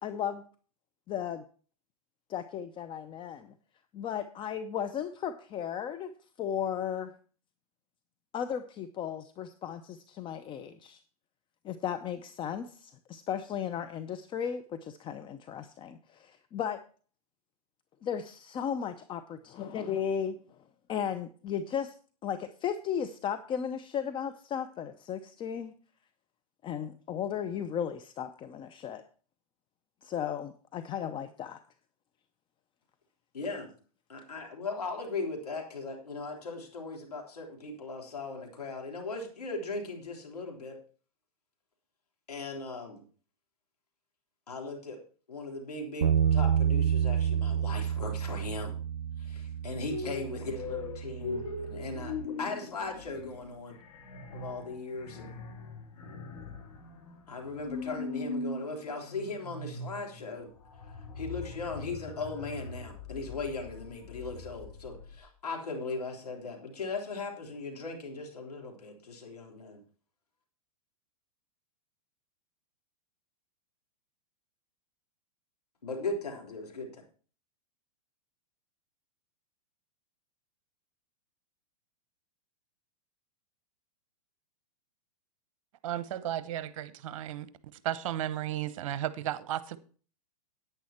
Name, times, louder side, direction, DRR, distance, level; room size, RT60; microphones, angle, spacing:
voice 1, 0.0-0.5 1.1-1.4 2.3-3.5 3.9-6.1 6.4-7.2 8.3-11.0 11.6-16.8 18.0-20.4 20.9-22.0 22.2-25.7 26.6-29.0 30.0-31.6, left 8 dB, 25° left, 10 dB, 0.6 m, -35 dB
voice 2, 33.3-33.7 34.1-40.8 42.3-43.0 44.5-45.0 45.3-48.7 49.2-53.8 54.3-55.4 57.3-60.5 60.8-69.8 75.8-77.0, left 3 dB, 85° left, 1 dB, 3.4 m, -38 dB
Bass guitar, 46.0-52.3, right 8 dB, 90° right, 0.5 m, -30 dB
sound 1, 49.8-65.2, left 3 dB, 70° left, 2.5 m, -41 dB
voice 3, 85.8-87.5 87.8-89.8, right 12 dB, 60° right, 15 dB, 0.9 m, -34 dB
10.5 x 9.1 x 4.3 m, 0.40 s
hypercardioid pair, 110°, 19 cm